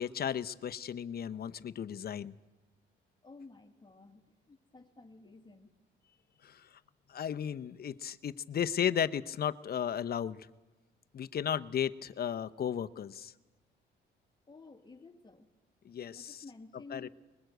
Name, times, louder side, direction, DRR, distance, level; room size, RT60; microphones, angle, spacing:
voice 1, 0.0-2.3 6.4-6.6 7.1-10.5 11.1-13.3 15.8-16.4 16.9-17.1, left 9 dB, 50° left, 12 dB, 0.9 m, -34 dB
voice 2, 3.2-4.2 4.5-5.7 14.5-15.5 16.1-17.1, left 3 dB, 20° left, 5 dB, 2.1 m, -52 dB
23.0 x 21.5 x 8.1 m, 1.1 s
cardioid pair, 90°, 20 cm